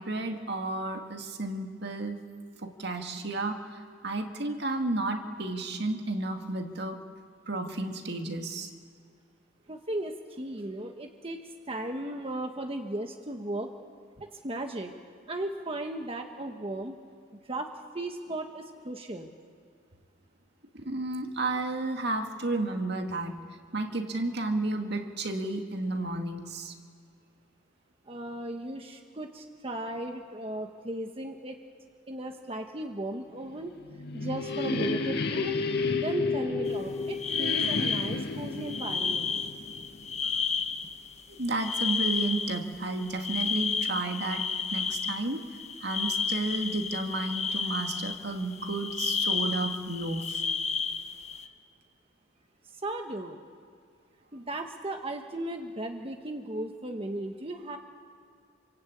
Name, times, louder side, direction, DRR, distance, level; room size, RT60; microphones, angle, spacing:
voice 1, 0.0-2.2 2.6-7.0 7.5-8.7 20.7-23.4 23.7-26.7 41.3-50.4, right 2 dB, 60° right, 4 dB, 2.2 m, -32 dB
voice 2, 9.7-13.7 14.2-14.9 15.3-17.0 17.3-19.3 28.1-31.6 32.1-33.7 34.1-35.5 35.9-39.3 52.7-53.4 54.3-57.8, right 1 dB, 30° right, 4 dB, 1.4 m, -36 dB
sound 1, 33.6-40.3, left 3 dB, 60° left, 2.0 m, -32 dB
sound 2, 36.7-36.8 37.1-38.2 38.5-41.2 41.5-51.5, left 5 dB, 35° left, 1.2 m, -31 dB
27.5 x 25.0 x 8.7 m, 2.2 s
head